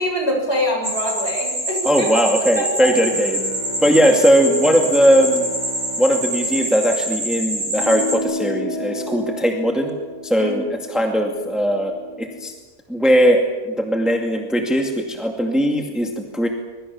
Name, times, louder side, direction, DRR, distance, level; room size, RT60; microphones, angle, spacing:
voice 1, 0.0-2.2 2.6-2.9 10.4-10.5, equal, 45° left, 1 dB, 7.0 m, -24 dB
sound 1, 0.8-8.2, right 1 dB, 45° right, 5.8 m, -26 dB
voice 2, 1.8-3.4 3.8-5.5 6.0-9.9 10.2-12.5 12.9-16.5, equal, ahead, 2 dB, 2.2 m, -19 dB
Bowed string instrument, 2.8-7.6, equal, 75° left, 4.4 m, -36 dB
sound 2, 7.7-12.5, left 2 dB, 15° left, 1.2 m, -32 dB
25.5 x 22.0 x 7.2 m, 1.2 s
omnidirectional pair, 1.6 m